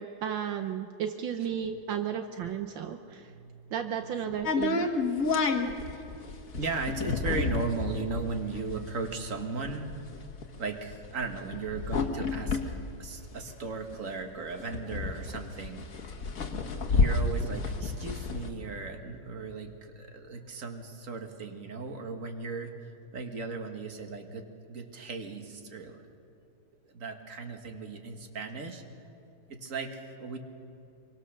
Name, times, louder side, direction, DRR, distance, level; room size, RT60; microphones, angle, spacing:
voice 1, 0.0-3.3 3.7-4.9, right 8 dB, 75° right, 7 dB, 1.6 m, -34 dB
voice 2, 3.3-3.7 4.1-4.3 6.4-9.9 10.6-12.6 13.0-15.9 16.8-22.7 23.1-26.0 26.9-28.8 29.5-30.4, right 4 dB, 40° right, 5 dB, 2.0 m, -36 dB
sound 1, 4.4-13.9 14.3-14.4 14.5-18.5, left 4 dB, 45° left, 1.7 m, -30 dB
25.5 x 24.0 x 6.7 m, 2.8 s
omnidirectional pair, 2.1 m